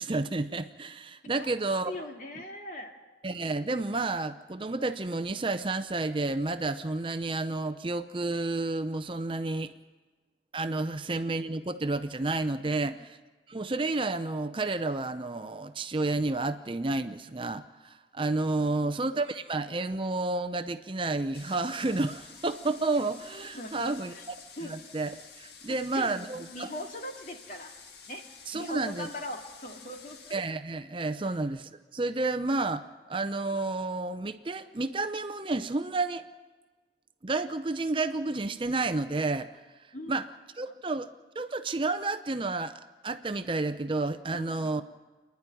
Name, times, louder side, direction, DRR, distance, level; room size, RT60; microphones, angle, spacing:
voice 1, 0.0-1.9 2.4-2.5 3.2-9.7 10.5-13.2 13.5-26.7 28.5-29.1 30.3-36.3 37.2-39.5 40.1-40.3 40.6-41.1 41.4-44.8, right 2 dB, 30° right, 10 dB, 0.6 m, -31 dB
voice 2, 1.8-2.9 23.5-24.2 24.6-24.7 25.6-27.7 28.1-28.2 28.5-30.3 39.9-40.1 44.3-44.8, left 1 dB, 45° left, 2 dB, 2.3 m, -41 dB
sound 1, 21.3-30.3, left 5 dB, 65° left, 1.8 m, -50 dB
28.5 x 10.5 x 9.9 m, 1.3 s
head